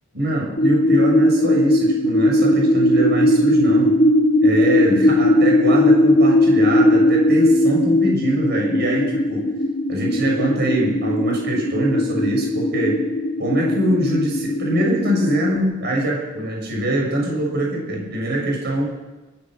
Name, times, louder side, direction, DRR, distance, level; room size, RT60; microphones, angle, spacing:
voice 1, 0.1-4.0 4.4-9.5 9.9-13.0 13.4-18.8, right 1 dB, 55° right, -1 dB, 6.8 m, -23 dB
sound 1, 0.6-15.6, left 1 dB, 40° left, 2.1 m, -18 dB
30.0 x 14.0 x 6.5 m, 1.2 s
head